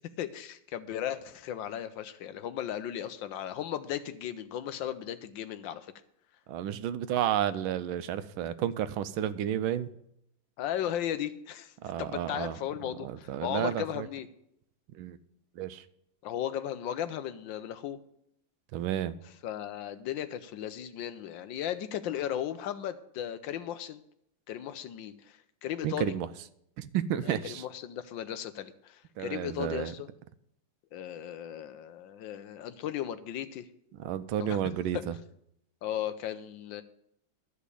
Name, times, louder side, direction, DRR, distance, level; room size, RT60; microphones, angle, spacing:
voice 1, 0.2-5.9 10.6-14.3 16.2-18.0 19.4-24.0 24.5-26.1 27.2-30.1 30.9-33.7 34.4-34.6 34.9-35.0 35.8-36.8, left 10 dB, 75° left, 1.4 m, -36 dB
voice 2, 6.5-9.9 11.8-12.6 13.0-14.1 14.9-15.2 15.6-15.8 18.7-19.2 25.8-26.3 26.8-27.6 29.2-29.9 34.0-35.1, right 10 dB, 90° right, 1.5 m, -31 dB
12.5 x 5.1 x 8.3 m
omnidirectional pair, 2.2 m